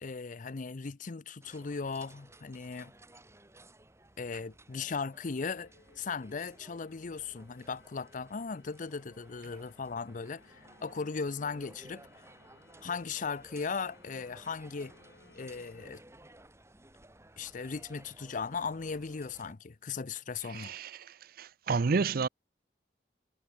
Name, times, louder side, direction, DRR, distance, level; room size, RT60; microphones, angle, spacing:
voice 1, 0.0-2.9 4.2-5.7 6.0-12.0 12.8-14.9 15.3-16.0 17.4-20.7, left 5 dB, 50° left, 0.6 m, -37 dB
sound 1, 1.4-19.5, right 1 dB, 15° right, 7.3 m, -57 dB
sound 2, 5.5-15.9, left 2 dB, 85° left, 5.7 m, -62 dB
voice 2, 20.5-21.1 21.4-22.3, right 4 dB, 55° right, 0.5 m, -30 dB
head